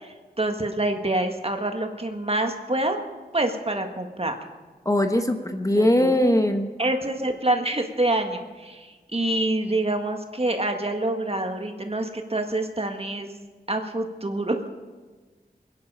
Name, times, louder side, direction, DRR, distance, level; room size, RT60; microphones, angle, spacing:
voice 1, 0.0-3.0 3.3-4.3 5.7-6.1 6.8-13.3 13.7-14.7, right 2 dB, 40° right, 5 dB, 1.7 m, -26 dB
voice 2, 4.8-6.7, left 1 dB, 20° left, 5 dB, 1.2 m, -21 dB
22.5 x 10.5 x 5.5 m, 1.3 s
wide cardioid pair, 55°, 16 cm